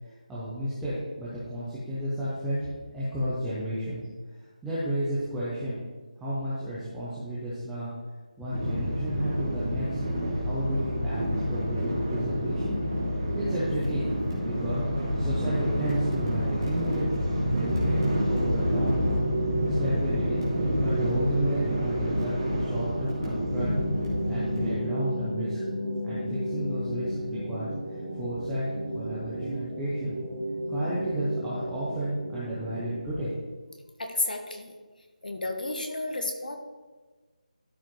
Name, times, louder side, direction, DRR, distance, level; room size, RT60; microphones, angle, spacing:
voice 1, 0.3-4.0 4.6-5.8 6.2-7.9 8.4-10.0 10.4-12.8 13.3-14.8 15.2-17.1 17.4-18.0 18.3-19.2 19.8-20.4 20.8-23.8 24.3-25.6 26.0-28.7 28.9-30.1 30.7-33.3, equal, ahead, -12 dB, 0.5 m, -32 dB
sound 1, 8.5-24.8, equal, 30° right, 2.1 m, -28 dB
sound 2, 17.6-33.0, right 1 dB, 60° right, 1.9 m, -33 dB
voice 2, 34.0-34.7 35.2-36.6, left 2 dB, 85° left, 4 dB, 1.4 m, -31 dB
12.5 x 4.9 x 3.0 m, 1.3 s
figure-of-eight pair, 180°, 4 cm